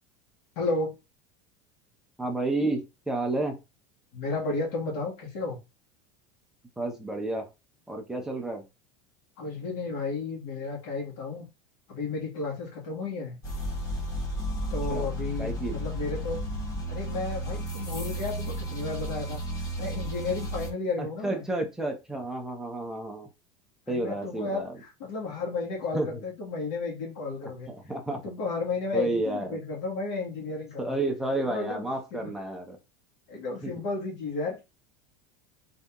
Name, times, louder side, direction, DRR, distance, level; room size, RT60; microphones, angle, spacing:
voice 1, 0.6-0.9 4.1-5.6 9.4-11.5 11.9-13.4 14.7-16.4 16.9-19.4 19.8-21.4 23.9-27.7 28.1-31.0 31.5-32.3 33.3-34.6, left 3 dB, 60° left, -3 dB, 1.8 m, -33 dB
voice 2, 2.2-3.6 6.8-7.5 7.9-8.6 14.9-15.1 15.4-15.8 21.0-23.3 23.9-24.7 25.9-26.2 27.7-28.2 28.9-29.6 30.8-32.8 33.6-33.7, right 2 dB, 5° right, 2 dB, 0.5 m, -31 dB
sound 1, 13.4-20.7, equal, 20° left, 0.9 m, -33 dB
3.9 x 2.7 x 3.6 m, 0.25 s
supercardioid pair, 180°, 16 cm